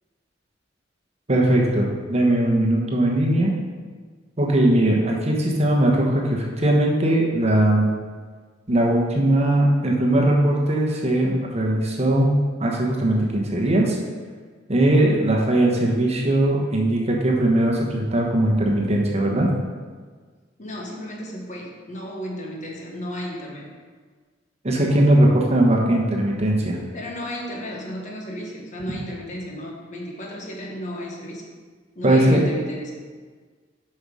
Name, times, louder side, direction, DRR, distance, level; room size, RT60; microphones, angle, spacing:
voice 1, 1.3-3.5 4.4-7.9 8.7-14.0 14.7-19.5 24.6-26.8 32.0-32.5, right 1 dB, 35° right, -1 dB, 1.2 m, -19 dB
voice 2, 20.6-23.7 26.9-31.5 31.9-32.9, equal, 40° left, -1 dB, 1.4 m, -33 dB
7.8 x 5.6 x 4.9 m, 1.5 s
head